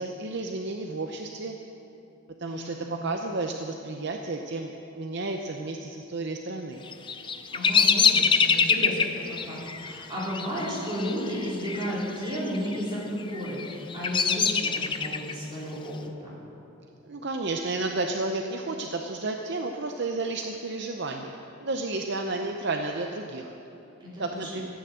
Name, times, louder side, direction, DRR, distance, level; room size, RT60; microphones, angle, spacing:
voice 1, 0.0-1.6 2.4-2.8 3.0-6.8 17.0-21.3 21.6-23.5 24.2-24.7, right 2 dB, 50° right, 3 dB, 0.7 m, -32 dB
voice 2, 2.4-2.9 7.5-16.3 24.0-24.6, equal, 20° right, -8 dB, 4.2 m, -33 dB
Bird vocalization bird call bird song, 6.9-11.9 12.2-12.8 13.3-15.3, left 6 dB, 20° left, 0.4 m, -24 dB
14.0 x 9.4 x 7.6 m, 2.9 s
head